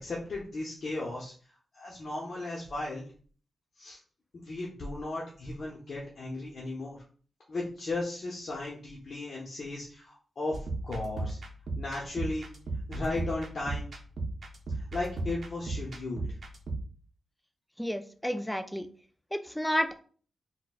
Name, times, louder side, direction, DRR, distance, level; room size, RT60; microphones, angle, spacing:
voice 1, 0.0-1.3 1.7-3.1 3.8-4.0 4.3-7.0 7.5-11.4 11.8-12.5 12.9-13.9 14.7-16.3, left 2 dB, 60° left, -4 dB, 0.8 m, -36 dB
sound 1, 10.5-16.9, right 2 dB, 60° right, 0.6 m, -36 dB
voice 2, 17.8-18.9 19.3-20.0, equal, 5° left, 8 dB, 0.3 m, -31 dB
4.0 x 2.2 x 2.4 m, 0.43 s
cardioid pair, 70°, 0 cm